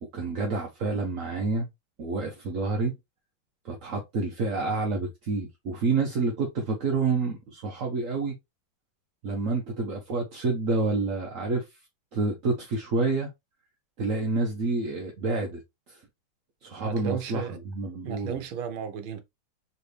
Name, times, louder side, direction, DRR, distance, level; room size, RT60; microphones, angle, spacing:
voice 1, 0.0-1.7 2.0-2.9 3.6-8.4 9.2-11.7 12.1-13.3 14.0-15.6 15.9-16.0 16.6-18.4, right 3 dB, 55° right, 1.0 m, -28 dB
voice 2, 16.8-17.6 18.0-19.2, right 8 dB, 80° right, 1.6 m, -34 dB
4.1 x 3.2 x 3.2 m
omnidirectional pair, 2.2 m